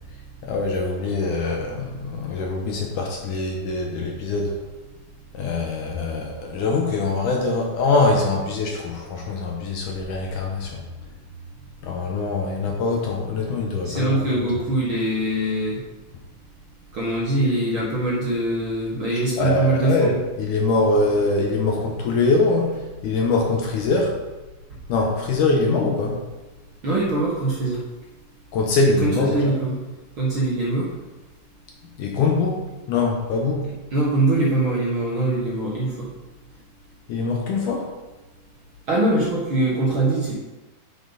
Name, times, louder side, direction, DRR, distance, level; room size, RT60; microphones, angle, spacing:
voice 1, 0.4-4.6 5.3-10.8 11.8-14.3 19.4-22.7 23.0-24.2 24.9-26.2 28.5-29.5 32.0-32.6 32.9-33.7 37.1-37.9, left 3 dB, 65° left, 0 dB, 2.3 m, -23 dB
voice 2, 13.8-15.8 16.9-20.2 26.8-27.8 29.0-29.8 30.2-30.9 33.9-36.1 38.9-40.3, right 2 dB, 45° right, -5 dB, 1.9 m, -22 dB
10.0 x 7.2 x 4.1 m, 1.1 s
omnidirectional pair, 4.3 m